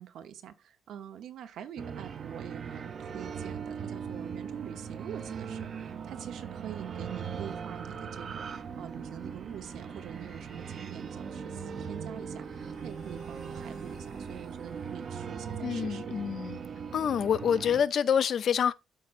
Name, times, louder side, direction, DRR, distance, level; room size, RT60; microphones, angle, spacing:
voice 1, 0.0-16.2, right 9 dB, 80° right, 0.8 m, -45 dB
sound 1, 1.7-15.8, left 2 dB, 85° left, 2.6 m, -60 dB
sound 2, 1.8-17.8, right 6 dB, 45° right, 0.6 m, -39 dB
voice 2, 15.6-16.6 16.9-18.7, left 8 dB, 50° left, 0.4 m, -27 dB
12.5 x 4.2 x 2.5 m
cardioid pair, 150°, 0 cm